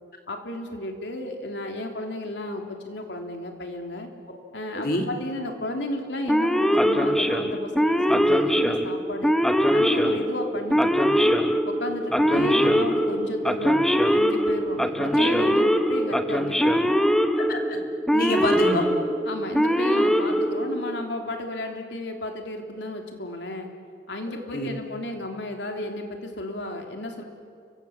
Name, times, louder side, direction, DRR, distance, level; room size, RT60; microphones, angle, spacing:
voice 1, 0.3-4.1 4.5-9.3 9.7-11.3 11.7-16.8 19.3-23.7 24.1-27.2, left 1 dB, 85° left, 3 dB, 3.3 m, -33 dB
voice 2, 4.7-5.1 12.3-12.5 15.2-15.3 17.4-17.8 18.1-18.9 24.5-24.7, left 1 dB, 50° left, 3 dB, 3.2 m, -26 dB
Male speech man speaking / Siren, 6.3-21.0, equal, 5° left, 1.0 m, -22 dB
29.5 x 24.0 x 7.3 m, 2.3 s
head